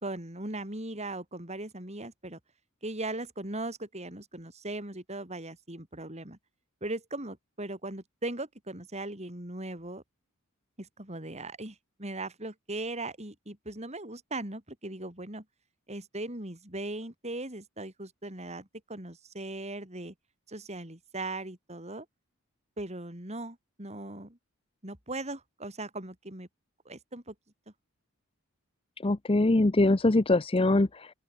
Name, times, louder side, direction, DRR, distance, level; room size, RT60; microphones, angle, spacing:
voice 1, 0.0-2.4 2.8-6.4 6.8-10.0 10.8-15.4 15.9-20.1 20.5-22.1 22.8-24.4 24.8-26.5 26.8-27.3, right 2 dB, 30° right, 4.9 m, -39 dB
voice 2, 29.0-31.1, left 2 dB, 25° left, 0.7 m, -23 dB
open air
head